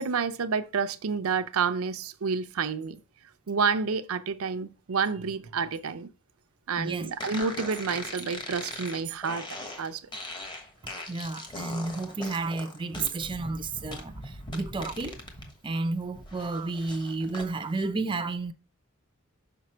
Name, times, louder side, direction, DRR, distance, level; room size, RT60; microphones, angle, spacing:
voice 1, 0.0-3.0 3.5-6.1 6.7-9.5 9.8-10.0, right 5 dB, 75° right, 0.5 m, -29 dB
voice 2, 6.8-7.1 11.1-15.2 15.6-18.5, right 3 dB, 25° right, 0.5 m, -32 dB
sound 1, 7.2-15.5 15.9-17.5, left 1 dB, 20° left, 1.2 m, -40 dB
6.1 x 5.1 x 4.3 m
head